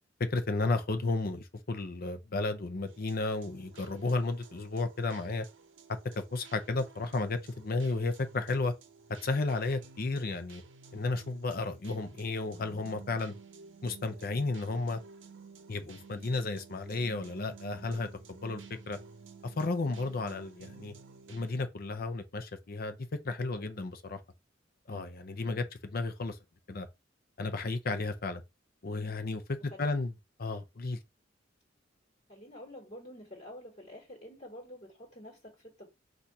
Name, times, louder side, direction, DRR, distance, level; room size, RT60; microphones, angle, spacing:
voice 1, 0.2-5.5 6.2-8.7 9.2-10.6 10.9-13.3 13.8-15.0 15.7-19.0 19.6-20.9 21.3-23.0 23.2-24.2 24.9-26.4 26.7-26.9 27.4-28.4 28.8-30.1 30.4-31.0, left 3 dB, 50° left, 0.7 m, -33 dB
sound 1, 2.9-21.6, right 5 dB, 75° right, 0.7 m, -53 dB
voice 2, 32.3-35.9, left 1 dB, 35° left, 1.7 m, -48 dB
4.2 x 2.6 x 4.6 m
head